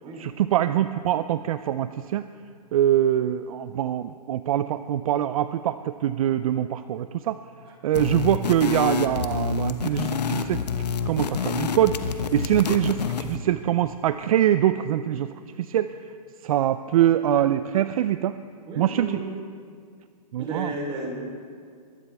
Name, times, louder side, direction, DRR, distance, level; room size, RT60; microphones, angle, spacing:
voice 1, 0.2-2.2 2.7-7.4 7.8-10.6 11.1-12.0 12.3-15.9 16.4-18.3 18.8-19.2 20.3-20.7, right 11 dB, 60° right, 13 dB, 0.5 m, -23 dB
sound 1, 7.9-13.4, left 6 dB, 85° left, 1.1 m, -28 dB
voice 2, 18.7-19.3 20.4-21.1, right 2 dB, 25° right, -1 dB, 3.7 m, -33 dB
22.5 x 12.5 x 3.5 m, 2.2 s
hypercardioid pair, 140°, 20 cm